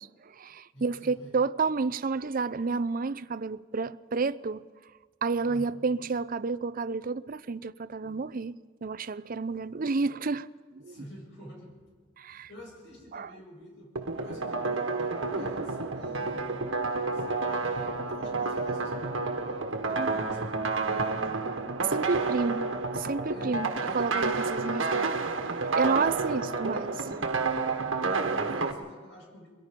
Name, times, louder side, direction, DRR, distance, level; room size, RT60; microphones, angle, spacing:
voice 1, 0.0-4.7 5.2-11.0 12.2-12.5 13.1-13.4 20.0-20.1 21.8-25.1 25.4-27.1, right 4 dB, 45° right, 0.6 m, -31 dB
voice 2, 0.7-1.3 5.5-5.7 10.9-11.8 12.2-16.5 17.1-21.5 22.1-22.6 23.3-23.7 25.8-26.4 27.7-29.5, equal, 65° left, 7.4 m, -48 dB
sound 1, 13.9-28.7, right 3 dB, 85° right, 1.6 m, -30 dB
23.0 x 22.5 x 5.3 m
head